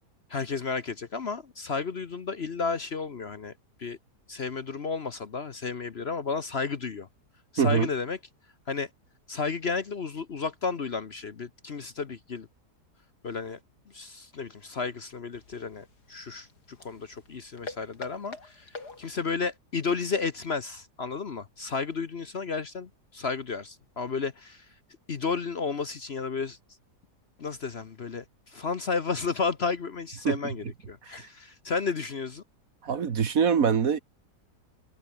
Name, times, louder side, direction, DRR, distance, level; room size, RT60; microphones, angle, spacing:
voice 1, 0.3-3.5 3.8-4.0 4.3-7.1 7.5-8.2 8.7-8.9 9.3-12.5 13.2-13.6 13.9-24.6 25.1-26.6 27.4-32.4, left 4 dB, 45° left, 1.2 m, -32 dB
voice 2, 7.6-7.9 30.3-30.5 32.8-34.0, right 7 dB, 55° right, 1.8 m, -24 dB
sound 1, 15.3-19.4, left 3 dB, 75° left, 4.4 m, -46 dB
omnidirectional pair, 1.8 m